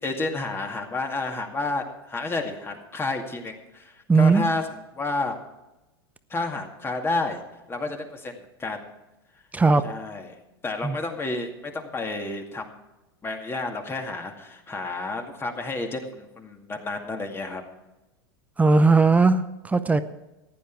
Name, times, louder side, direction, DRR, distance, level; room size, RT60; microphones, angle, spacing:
voice 1, 0.0-4.6 5.0-5.3 6.3-7.4 7.7-8.9 9.8-10.4 10.6-12.8 13.2-17.6, left 3 dB, 20° left, 3 dB, 2.2 m, -30 dB
voice 2, 4.1-4.4 9.5-9.8 10.8-11.0 18.6-20.0, right 4 dB, 10° right, 12 dB, 0.7 m, -18 dB
15.0 x 10.5 x 4.7 m, 0.99 s
hypercardioid pair, 100°, 13 cm